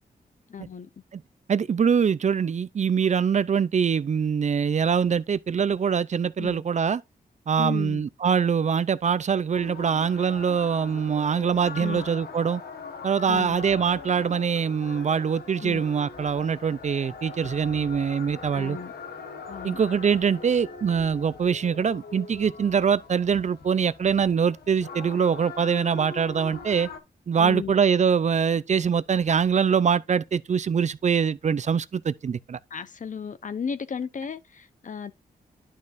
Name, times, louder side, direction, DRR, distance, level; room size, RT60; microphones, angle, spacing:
voice 1, 0.5-0.9 6.4-6.6 7.6-8.0 11.8-12.1 13.3-13.6 15.6-15.8 18.5-18.9 19.5-19.8 27.4-27.8 32.7-35.1, left 6 dB, 50° left, 0.8 m, -34 dB
voice 2, 1.5-7.0 7.5-12.6 13.0-18.8 19.6-26.9 27.3-32.6, right 6 dB, 45° right, 0.5 m, -23 dB
sound 1, 9.5-27.0, left 4 dB, 75° left, 1.4 m, -41 dB
11.0 x 5.3 x 2.6 m
cardioid pair, 85°, 17 cm